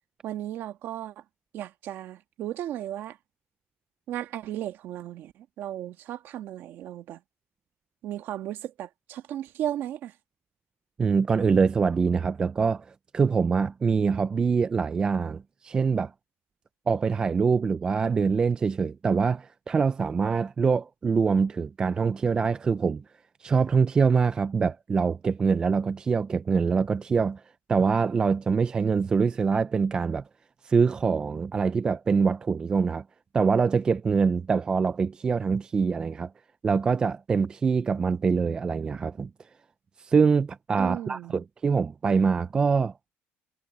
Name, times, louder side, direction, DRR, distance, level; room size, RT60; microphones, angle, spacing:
voice 1, 0.2-1.2 1.5-3.2 4.1-7.2 8.0-10.1 40.8-41.4, right 12 dB, 45° right, 1.5 m, -35 dB
voice 2, 11.0-12.9 13.1-16.1 16.9-23.0 23.4-27.4 27.7-30.2 30.6-33.0 33.3-36.3 36.6-39.3 40.0-42.9, right 5 dB, 15° right, 0.3 m, -24 dB
cardioid pair, 175°, 5 cm